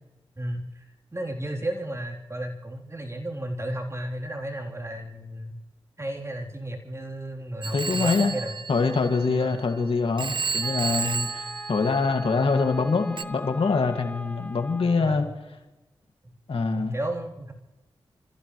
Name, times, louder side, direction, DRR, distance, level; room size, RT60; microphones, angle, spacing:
voice 1, 0.4-0.8 1.1-5.6 6.0-8.6 9.4-9.6 15.0-15.3 16.7-17.5, right 1 dB, 30° right, 0 dB, 3.7 m, -33 dB
Telephone, 7.6-9.7 10.2-12.5 13.2-13.3, right 5 dB, 55° right, 0.8 m, -32 dB
voice 2, 7.7-8.3 8.7-15.2 16.5-17.0, left 4 dB, 70° left, 5 dB, 2.3 m, -24 dB
Wind instrument woodwind instrument, 10.6-15.2, left 1 dB, 15° left, 1.3 m, -41 dB
29.0 x 15.0 x 3.3 m, 1.1 s
cardioid pair, 45°, 10 cm